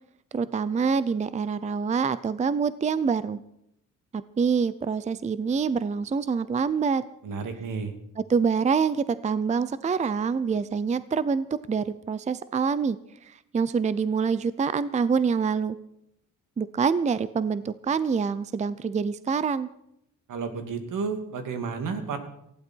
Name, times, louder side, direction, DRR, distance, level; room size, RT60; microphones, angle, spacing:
voice 1, 0.3-3.4 4.1-7.0 8.3-13.0 13.2-15.8 16.6-19.7, right 5 dB, 20° right, 15 dB, 0.5 m, -26 dB
voice 2, 7.2-7.9 20.3-22.2, right 5 dB, 75° right, 7 dB, 2.6 m, -31 dB
19.5 x 15.5 x 4.5 m, 0.77 s
cardioid pair, 135°, 33 cm